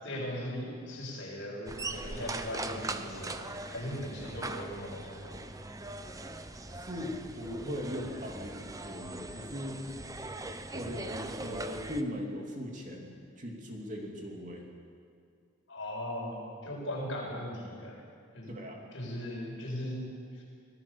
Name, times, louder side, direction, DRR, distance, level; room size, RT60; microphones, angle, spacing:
voice 1, 0.0-5.4 15.7-18.0 18.3-18.6 18.9-20.1 20.3-20.4, left 1 dB, 65° left, -3 dB, 7.8 m, -38 dB
sound 1, 1.7-12.0, right 2 dB, 15° right, 0.8 m, -41 dB
voice 2, 6.8-9.8 10.7-14.6 18.5-18.9, equal, 35° right, 0 dB, 3.2 m, -39 dB
25.0 x 18.0 x 7.3 m, 2.3 s
head